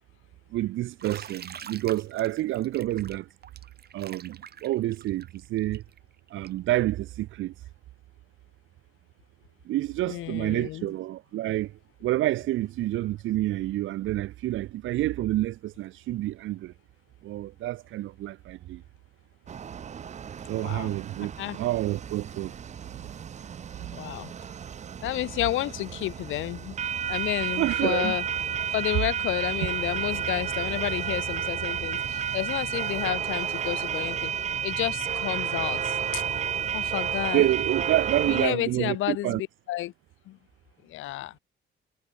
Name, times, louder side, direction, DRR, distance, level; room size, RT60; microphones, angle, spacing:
voice 1, 0.5-3.3 3.9-5.8 6.3-7.5 9.7-11.7 12.0-16.7 17.2-18.8 20.5-22.5 27.6-28.1 37.3-39.4, right 15 dB, 80° right, 1.0 m, -28 dB
Bathtub (filling or washing), 1.0-6.7, right 8 dB, 55° right, 1.9 m, -45 dB
voice 2, 10.1-10.9 20.6-21.0 21.4-21.6 23.9-24.3 25.0-26.8 27.1-28.2 28.7-34.3 34.6-36.2 36.7-37.5 38.3-39.9 40.3-40.4 40.8-41.4, left 15 dB, 80° left, 0.7 m, -31 dB
sound 1, 19.5-38.5, right 8 dB, 35° right, 0.5 m, -31 dB
cardioid pair, 90°, 20 cm